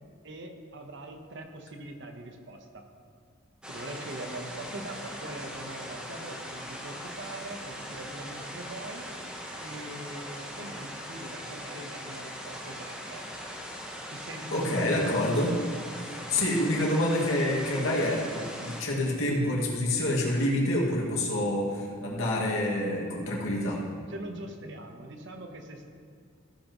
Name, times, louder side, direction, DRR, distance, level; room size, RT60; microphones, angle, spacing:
voice 1, 0.2-2.9 3.7-9.1 9.6-13.3 14.1-15.2 24.1-25.9, right 1 dB, 60° right, 5 dB, 1.1 m, -42 dB
sound 1, 3.6-18.8, equal, 5° right, 1.1 m, -40 dB
voice 2, 14.5-15.5 16.0-23.8, left 1 dB, 80° left, -4 dB, 2.2 m, -27 dB
14.5 x 10.5 x 3.1 m, 2.1 s
head